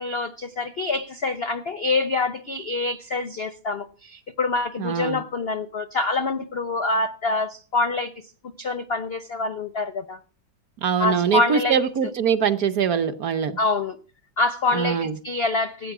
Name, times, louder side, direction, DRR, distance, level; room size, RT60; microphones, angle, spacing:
voice 1, 0.0-8.1 8.6-10.2 11.0-11.8 13.6-14.0 14.4-15.9, left 3 dB, 65° left, 0.6 m, -26 dB
voice 2, 4.8-5.2 10.8-13.6 14.7-15.1, right 7 dB, 60° right, 1.1 m, -23 dB
16.0 x 8.8 x 6.0 m
omnidirectional pair, 2.1 m